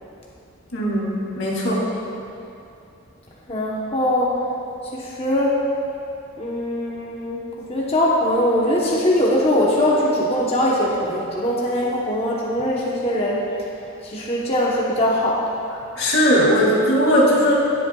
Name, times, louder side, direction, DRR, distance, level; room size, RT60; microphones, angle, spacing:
voice 1, 0.7-1.9 16.0-17.6, equal, 80° left, -4 dB, 2.4 m, -18 dB
voice 2, 3.5-4.3 4.9-5.5 6.4-13.4 14.0-15.4, left 1 dB, 30° left, -5 dB, 0.9 m, -21 dB
17.5 x 8.3 x 2.3 m, 2.7 s
head